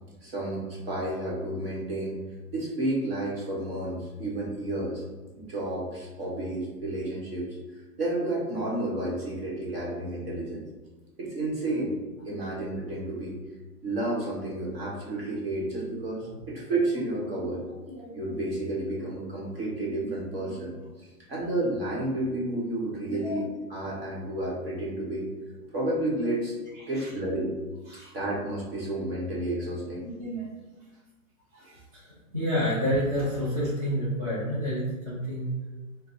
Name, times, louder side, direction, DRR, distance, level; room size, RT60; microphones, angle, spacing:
voice 1, 0.2-2.2 2.5-5.0 5.3-7.6 8.0-10.6 11.2-11.9 12.2-13.4 13.8-17.6 18.1-20.7 21.3-25.3 25.7-26.5 26.9-27.5 28.1-30.1, right 1 dB, 40° right, -5 dB, 1.2 m, -31 dB
voice 2, 17.3-18.4 20.0-20.2 20.4-20.5 23.0-23.4 26.7-27.1 27.9-28.1 30.0-30.6 31.5-35.5, equal, 25° right, -12 dB, 0.9 m, -31 dB
3.9 x 2.2 x 4.4 m, 1.2 s
hypercardioid pair, 180°, 45 cm